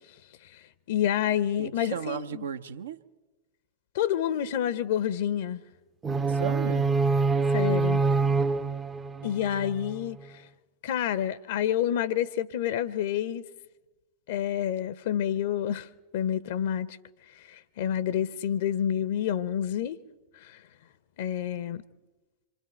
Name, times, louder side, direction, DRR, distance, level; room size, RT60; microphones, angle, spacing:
voice 1, 0.9-2.4 3.9-5.6 7.5-8.0 9.2-10.2 10.8-13.4 14.3-15.9 16.1-17.0 17.5-20.0 20.4-20.6 21.2-21.8, left 10 dB, 55° left, 0.7 m, -28 dB
voice 2, 1.6-3.0 6.3-6.9, right 8 dB, 65° right, 0.8 m, -35 dB
sound 1, 6.0-10.1, right 4 dB, 20° right, 0.7 m, -26 dB
26.5 x 25.0 x 4.4 m
figure-of-eight pair, 90°, 0 cm